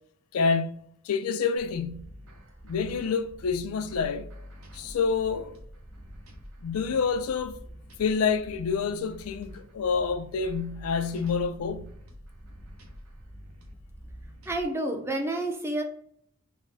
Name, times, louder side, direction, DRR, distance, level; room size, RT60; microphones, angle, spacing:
voice 1, 0.3-2.1 2.6-4.3 4.7-5.6 6.6-7.6 8.0-11.9, left 5 dB, 90° left, 0.4 m, -28 dB
sound 1, 1.6-14.6, equal, 70° right, 0.7 m, -46 dB
voice 2, 14.5-15.8, right 1 dB, 10° right, 0.4 m, -29 dB
3.6 x 2.0 x 3.3 m
head